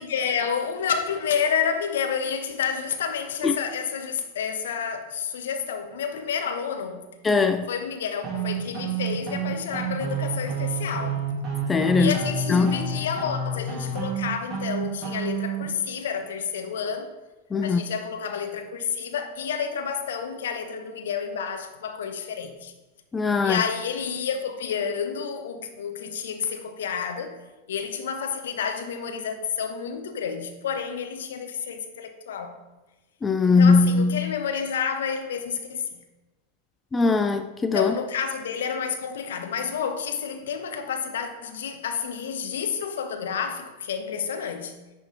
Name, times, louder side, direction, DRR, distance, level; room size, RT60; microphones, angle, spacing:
voice 1, 0.0-7.1 7.7-11.3 12.0-17.1 17.6-22.7 23.4-27.4 27.7-32.6 33.4-36.0 37.7-44.8, left 7 dB, 60° left, 0.8 m, -30 dB
voice 2, 7.2-7.7 11.7-12.2 12.5-12.8 17.5-17.8 23.1-23.6 33.2-34.2 36.9-37.9, left 4 dB, 15° left, 0.3 m, -20 dB
sound 1, 8.2-15.6, right 5 dB, 20° right, 2.4 m, -29 dB
10.5 x 3.5 x 4.2 m
figure-of-eight pair, 90°, 0 cm